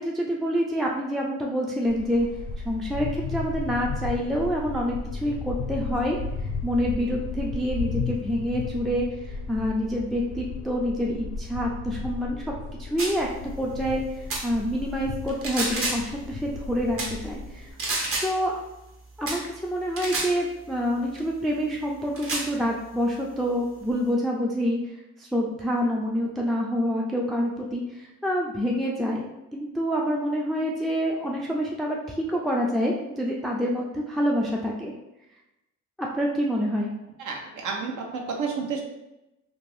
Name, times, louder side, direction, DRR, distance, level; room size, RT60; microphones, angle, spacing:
voice 1, 0.0-2.3 2.6-6.2 6.6-12.4 12.8-13.3 13.6-17.7 18.2-18.6 19.2-24.8 25.2-34.9 36.0-36.9, equal, ahead, -2 dB, 0.3 m, -27 dB
sound 1, 1.9-17.7, left 4 dB, 85° left, 0.6 m, -34 dB
sound 2, 13.0-13.2 14.3-14.5 15.3-16.1 17.0-17.2 17.8-18.3 19.3-19.4 20.0-20.3 21.2-21.3 22.2-22.5, right 2 dB, 45° right, 0.9 m, -29 dB
voice 2, 37.2-38.8, right 5 dB, 75° right, 1 dB, 0.7 m, -31 dB
2.5 x 2.5 x 3.2 m, 0.93 s
cardioid pair, 90°, 30 cm